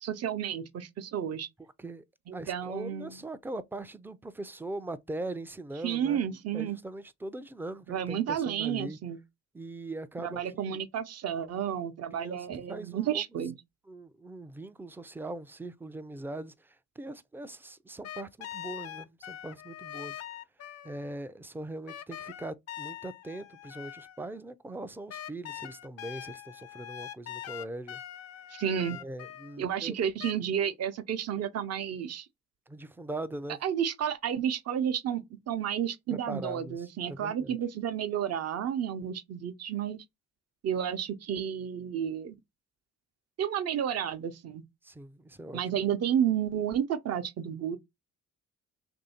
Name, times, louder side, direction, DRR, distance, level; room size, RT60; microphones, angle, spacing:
voice 1, 0.0-1.5 2.3-3.2 5.8-6.8 7.9-9.2 10.2-13.6 28.5-29.0 29.6-32.3 33.6-40.0 40.6-42.3 43.4-44.6 45.5-47.8, right 9 dB, 55° right, 0.7 m, -31 dB
voice 2, 2.3-6.2 6.5-9.0 9.5-10.8 11.4-11.5 12.2-13.2 13.9-20.2 20.8-28.0 29.0-30.0 32.7-33.6 36.1-37.6 44.8-45.6, right 2 dB, 5° right, 0.3 m, -41 dB
sound 1, 18.0-21.2 21.9-24.4 25.1-29.6 30.2-30.3, left 12 dB, 60° left, 0.4 m, -43 dB
3.1 x 2.6 x 4.2 m
cardioid pair, 90°, 30 cm